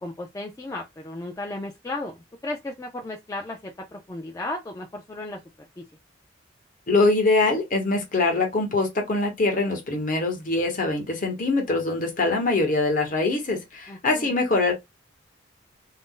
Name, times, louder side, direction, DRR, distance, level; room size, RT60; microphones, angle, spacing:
voice 1, 0.0-5.4 5.8-5.9 13.9-14.3, left 2 dB, 15° left, 0.4 m, -35 dB
voice 2, 6.9-14.7, left 3 dB, 45° left, 0.9 m, -23 dB
2.6 x 2.0 x 3.6 m
head